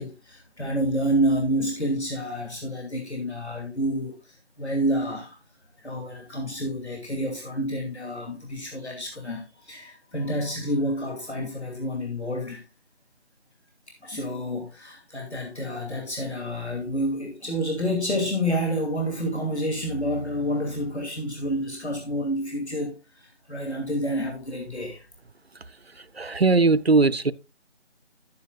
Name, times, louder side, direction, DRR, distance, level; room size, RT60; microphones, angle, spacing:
voice 1, 0.0-5.4 5.8-12.6 14.0-25.0, equal, 65° left, 2.6 m, -29 dB
voice 2, 25.9-27.3, right 3 dB, 60° right, 0.6 m, -20 dB
11.0 x 9.6 x 2.3 m
figure-of-eight pair, 170°, 35 cm